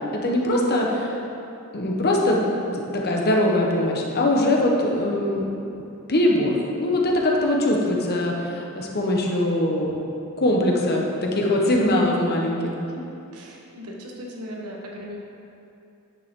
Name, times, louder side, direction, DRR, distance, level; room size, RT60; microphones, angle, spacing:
voice 1, 0.1-0.8 1.7-2.4 2.7-5.5 6.1-10.0 10.4-12.7, left 1 dB, 45° left, -1 dB, 1.1 m, -22 dB
voice 2, 13.3-15.2, left 1 dB, 85° right, -1 dB, 1.1 m, -38 dB
9.6 x 6.7 x 3.7 m, 2.7 s
head